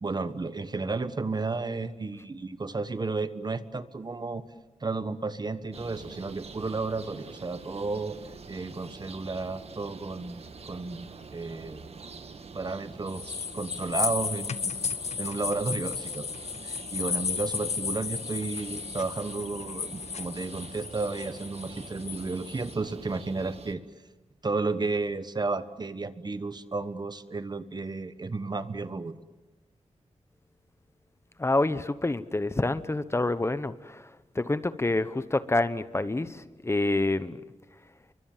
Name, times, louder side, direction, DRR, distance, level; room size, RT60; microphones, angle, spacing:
voice 1, 0.0-4.4 4.8-8.2 8.5-11.1 11.3-11.8 12.5-14.9 15.2-16.3 16.6-23.8 24.4-29.1, right 3 dB, 40° right, 12 dB, 1.3 m, -32 dB
sound 1, 5.7-23.7, right 4 dB, 65° right, 1.8 m, -46 dB
sound 2, 13.1-22.7, left 6 dB, 80° left, 1.2 m, -34 dB
voice 2, 31.4-34.1 34.3-37.4, left 2 dB, 25° left, 13 dB, 1.0 m, -27 dB
29.5 x 24.0 x 7.3 m, 1.1 s
wide cardioid pair, 95°, 11 cm